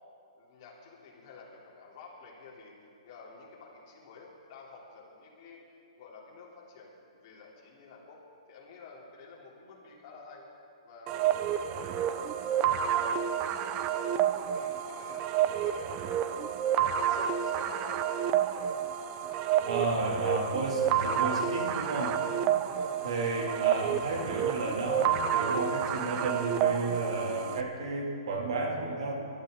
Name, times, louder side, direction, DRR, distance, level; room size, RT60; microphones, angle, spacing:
voice 1, 0.4-2.8 3.0-5.6 6.0-8.2 8.5-10.5 10.8-11.3 11.6-13.3 13.6-15.2 15.5-16.6 17.0-18.7 22.7-23.4 23.8-23.9 28.5-28.7, left 4 dB, 40° left, -4 dB, 3.4 m, -50 dB
sound 1, 11.1-27.6, right 9 dB, 25° right, 0.5 m, -29 dB
voice 2, 19.6-22.2 23.0-29.1, right 2 dB, 70° right, 0 dB, 2.8 m, -32 dB
23.0 x 13.0 x 3.9 m, 2.6 s
hypercardioid pair, 155°, 3 cm